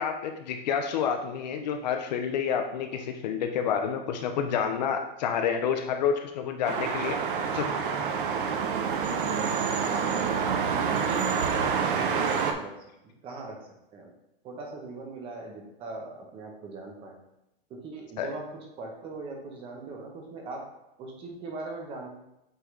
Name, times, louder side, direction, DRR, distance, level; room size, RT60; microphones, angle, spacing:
voice 1, 0.0-7.2 7.5-7.7 18.2-18.3, left 7 dB, 45° left, 6 dB, 0.5 m, -29 dB
sound 1, 6.6-12.5, right 6 dB, 55° right, 0.7 m, -27 dB
voice 2, 9.8-10.5 10.9-12.7 13.0-14.1 14.4-17.2 17.7-18.5 18.8-20.7 21.0-22.2, right 3 dB, 20° right, 1 dB, 0.7 m, -40 dB
8.0 x 3.7 x 3.2 m, 0.86 s
supercardioid pair, 170°, 31 cm